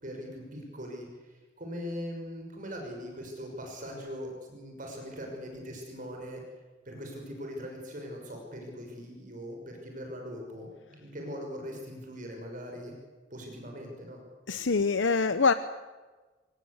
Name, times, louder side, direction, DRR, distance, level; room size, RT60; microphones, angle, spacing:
voice 1, 0.0-6.4 6.8-12.9 13.3-14.2, equal, 45° right, 2 dB, 6.0 m, -41 dB
voice 2, 14.5-15.5, left 4 dB, 85° left, 11 dB, 0.9 m, -24 dB
26.5 x 19.0 x 8.2 m, 1.3 s
head